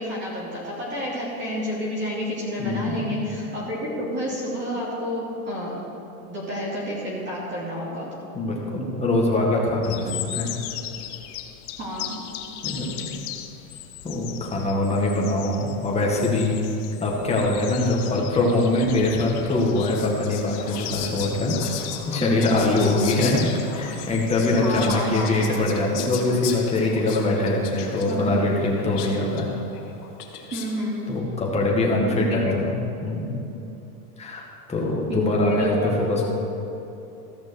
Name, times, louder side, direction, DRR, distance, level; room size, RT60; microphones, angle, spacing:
voice 1, 0.0-5.8 6.3-8.1 11.8-12.2 22.2-22.6 24.6-25.5 28.1-28.4 30.5-31.0 32.1-32.5 35.1-36.2, equal, 25° right, -6 dB, 2.6 m, -29 dB
voice 2, 2.6-3.1 8.3-10.5 12.6-13.1 14.0-16.6 17.0-21.6 22.1-29.5 31.1-32.8 33.0-33.3 34.2-34.4 34.7-36.2, left 2 dB, 15° left, -2 dB, 1.9 m, -23 dB
sound 1, 9.8-25.2, left 11 dB, 45° left, 0.9 m, -38 dB
Whispering, 19.5-30.9, left 7 dB, 90° left, 1.6 m, -37 dB
14.5 x 6.3 x 6.4 m, 3.0 s
supercardioid pair, 140°, 45 cm